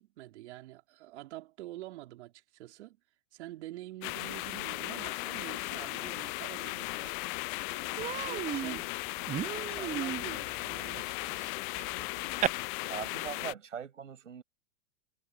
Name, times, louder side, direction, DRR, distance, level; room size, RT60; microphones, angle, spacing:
voice 1, 0.0-3.0 3.3-7.2 7.7-8.9 9.3-11.6, right 16 dB, 65° right, 4.3 m, -47 dB
sound 1, 4.0-13.5, left 29 dB, 45° left, 0.6 m, -37 dB
Human voice, 7.0-7.1 7.4-7.6 8.0-12.5, right 11 dB, 20° right, 0.6 m, -36 dB
voice 2, 12.9-14.4, right 7 dB, 85° right, 6.9 m, -40 dB
hypercardioid pair, 110°, 36 cm